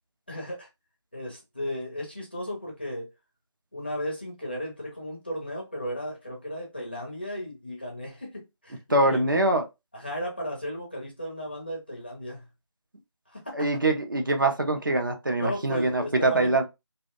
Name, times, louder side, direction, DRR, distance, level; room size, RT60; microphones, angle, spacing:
voice 1, 0.3-0.7 1.1-3.1 3.7-9.3 9.9-12.4 13.3-13.7 15.4-16.6, equal, 20° left, 0.5 m, -35 dB
voice 2, 8.9-9.7 13.5-16.6, right 2 dB, 45° right, 0.4 m, -24 dB
2.5 x 2.1 x 2.3 m
figure-of-eight pair, 165°, 15 cm